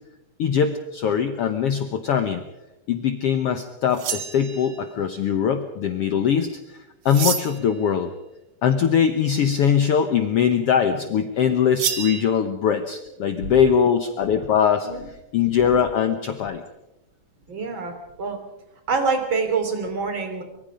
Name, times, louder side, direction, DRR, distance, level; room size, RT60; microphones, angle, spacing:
voice 1, 0.4-2.4 2.9-6.6 7.0-8.1 8.6-14.9 15.3-16.6, left 7 dB, 60° left, 8 dB, 1.7 m, -21 dB
sound 1, 3.9-4.9 7.1-7.7 11.8-12.2, right 8 dB, 60° right, 2.6 m, -28 dB
voice 2, 17.5-18.4 18.9-20.4, right 4 dB, 40° right, 6 dB, 3.7 m, -25 dB
25.0 x 23.0 x 5.2 m, 0.92 s
omnidirectional pair, 3.6 m